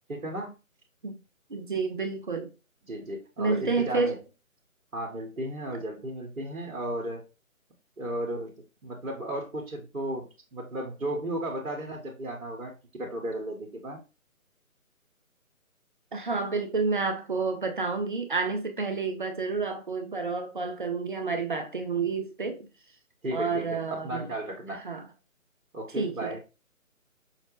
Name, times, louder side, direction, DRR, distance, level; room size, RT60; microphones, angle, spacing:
voice 1, 0.1-0.6 2.9-4.2 4.9-7.2 8.0-8.5 8.8-14.0 23.2-24.8 25.7-26.4, right 1 dB, 65° right, 1.7 m, -34 dB
voice 2, 1.5-2.5 3.4-4.1 16.1-22.7 23.3-24.3 24.8-25.1 26.0-26.4, right 4 dB, 35° right, 0.6 m, -29 dB
6.4 x 2.3 x 3.1 m
figure-of-eight pair, 155°, 42 cm